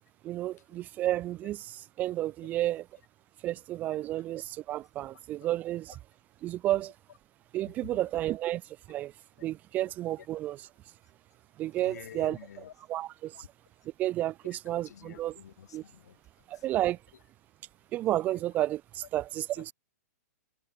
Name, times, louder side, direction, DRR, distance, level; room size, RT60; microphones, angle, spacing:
voice 1, 0.2-2.9 3.4-5.9 6.4-6.9 7.5-8.6 8.9-9.1 9.4-10.6 11.6-12.4 12.9-13.4 14.0-15.3 15.7-15.8 16.5-17.0 17.9-19.7, right 14 dB, 20° right, 0.4 m, -31 dB
voice 2, 5.1-5.5 7.8-8.0 10.2-10.3 11.8-12.7 13.3-13.5 14.8-16.2 16.5-16.7 19.6-19.7, left 9 dB, 75° left, 6.2 m, -49 dB
hypercardioid pair, 160°, 9 cm